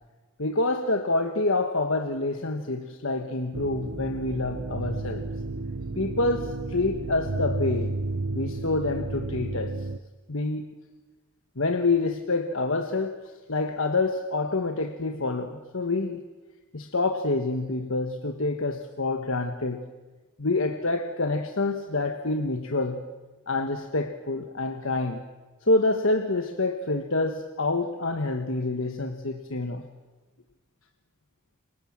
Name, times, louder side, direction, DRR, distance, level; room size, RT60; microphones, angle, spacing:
voice 1, 0.4-5.3 6.0-7.9 8.3-9.7 10.3-10.7 11.6-13.2 13.5-16.2 16.7-19.8 20.4-23.0 23.5-25.2 25.7-29.8, left 2 dB, 60° left, 6 dB, 1.5 m, -27 dB
sound 1, 3.5-10.0, right 2 dB, 65° right, 0.9 m, -32 dB
29.0 x 25.5 x 7.5 m, 1.2 s
head